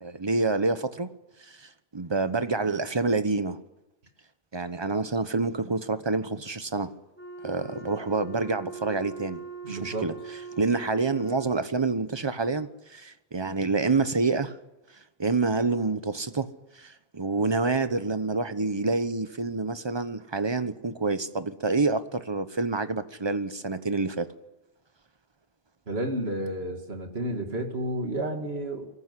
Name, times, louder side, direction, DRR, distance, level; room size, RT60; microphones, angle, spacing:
voice 1, 0.0-1.1 1.5-3.6 4.5-6.9 7.4-9.4 9.7-10.1 10.6-14.6 15.2-16.5 16.8-24.3, right 3 dB, 25° right, 1.0 m, -27 dB
Wind instrument woodwind instrument, 7.2-11.8, right 5 dB, 50° right, 7.3 m, -41 dB
voice 2, 9.6-10.1 25.9-28.9, right 1 dB, 80° right, 2.6 m, -31 dB
24.0 x 15.0 x 9.7 m
omnidirectional pair, 1.0 m